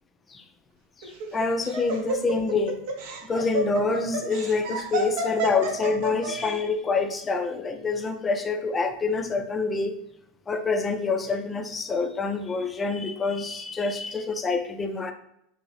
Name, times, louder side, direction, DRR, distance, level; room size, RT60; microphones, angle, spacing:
voice 1, 1.0-2.8 3.3-10.0 10.5-15.1, left 4 dB, 20° left, 7 dB, 0.4 m, -26 dB
Laughter, 1.0-6.5, right 2 dB, 65° right, 0.6 m, -30 dB
2.6 x 2.6 x 3.2 m, 0.76 s
hypercardioid pair, 100°, 0 cm